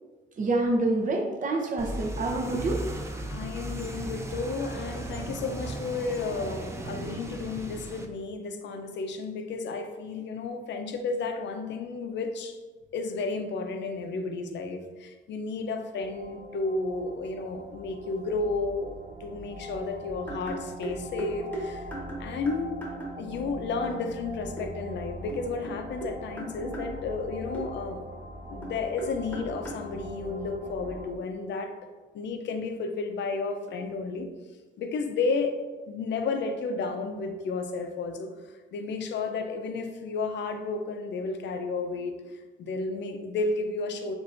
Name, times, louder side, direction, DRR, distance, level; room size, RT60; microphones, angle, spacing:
voice 1, 0.4-2.8 10.7-10.8 26.6-26.8, right 2 dB, 40° right, 2 dB, 0.8 m, -27 dB
sound 1, 1.8-8.1, right 1 dB, 15° right, 0.5 m, -36 dB
voice 2, 3.3-12.6 12.9-21.9 22.2-22.8 23.2-28.0 28.5-31.8 32.1-34.3 34.8-38.3 38.7-44.1, left 3 dB, 65° left, 6 dB, 0.6 m, -32 dB
sound 2, 16.0-31.1, right 1 dB, 85° right, 0.9 m, -42 dB
sound 3, 20.3-23.5 23.8-24.0 24.6-24.7 25.3-26.9 27.5-27.7 28.6-29.9, right 1 dB, 10° left, 1.3 m, -38 dB
7.4 x 2.6 x 2.5 m, 1.3 s
cardioid pair, 90°, 20 cm